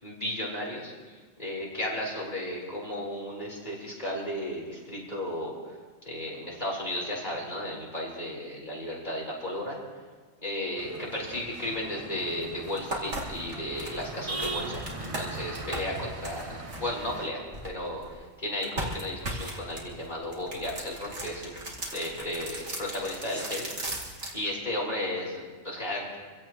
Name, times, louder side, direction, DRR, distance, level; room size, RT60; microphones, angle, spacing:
voice 1, 0.0-0.9 1.4-5.5 6.0-9.8 10.4-21.5 21.9-23.7 24.3-26.0, left 1 dB, 40° left, -4 dB, 4.6 m, -34 dB
sound 1, 10.8-17.3, right 2 dB, 30° right, 1.4 m, -40 dB
sound 2, 12.3-12.4 12.8-18.1 18.6-24.4, right 1 dB, 85° right, 2.9 m, -37 dB
26.5 x 16.5 x 3.1 m, 1.4 s
omnidirectional pair, 1.1 m